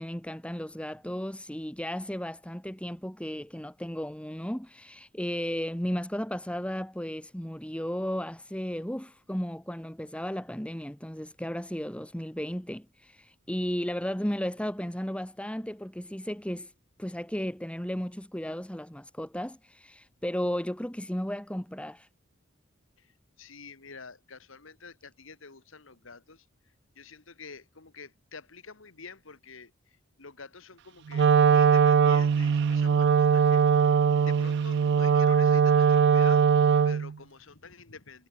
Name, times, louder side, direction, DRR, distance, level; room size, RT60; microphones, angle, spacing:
voice 1, 0.0-16.7 17.0-22.1, equal, 5° left, 1.7 m, -34 dB
voice 2, 23.0-26.5 27.0-36.5 36.8-38.3, left 4 dB, 80° left, 1.9 m, -47 dB
Wind instrument woodwind instrument, 31.1-37.1, right 6 dB, 60° right, 0.3 m, -21 dB
head